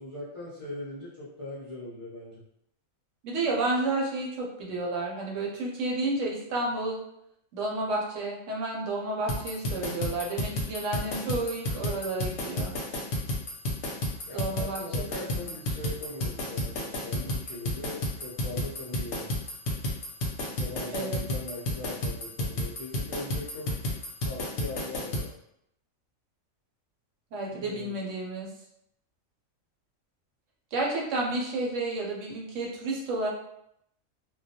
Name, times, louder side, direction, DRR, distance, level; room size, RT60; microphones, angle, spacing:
voice 1, 0.0-2.4 14.3-19.4 20.6-23.9 24.2-25.3 27.5-27.9, left 2 dB, 45° left, -10 dB, 0.4 m, -40 dB
voice 2, 3.2-7.0 7.5-12.7 14.3-14.8 15.2-15.5 20.9-21.2 27.3-28.5 30.7-33.3, right 2 dB, 70° right, -1 dB, 0.9 m, -31 dB
sound 1, 9.3-25.3, left 1 dB, 65° left, 0.8 m, -31 dB
2.2 x 2.1 x 2.7 m, 0.76 s
omnidirectional pair, 1.4 m